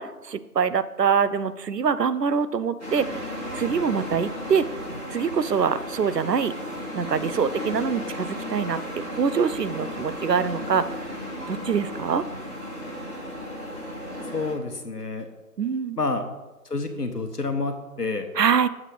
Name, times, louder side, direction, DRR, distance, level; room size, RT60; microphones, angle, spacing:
voice 1, 0.0-3.3 3.5-4.7 5.1-6.5 6.9-8.8 9.1-10.9 11.5-12.2 15.6-16.0 18.4-18.7, right 6 dB, 85° right, 14 dB, 0.6 m, -24 dB
sound 1, 2.8-14.5, equal, 45° right, 2.8 m, -34 dB
voice 2, 14.3-15.3 16.0-16.3 16.6-18.3, left 3 dB, 75° left, 6 dB, 1.2 m, -28 dB
7.7 x 7.3 x 3.4 m, 1.1 s
figure-of-eight pair, 175°, 47 cm